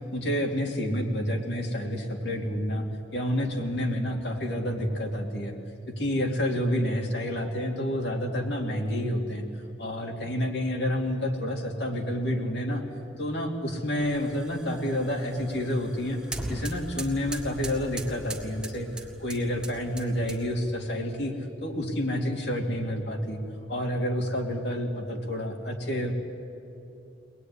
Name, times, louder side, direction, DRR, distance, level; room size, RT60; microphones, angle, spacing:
voice 1, 0.1-5.6 5.9-9.5 9.8-12.8 13.2-16.2 16.5-21.3 21.6-23.4 23.7-26.1, equal, 65° left, 2 dB, 2.8 m, -29 dB
sound 1, 14.0-20.7, right 1 dB, 5° right, 1.8 m, -40 dB
23.0 x 19.5 x 9.8 m, 2.8 s
head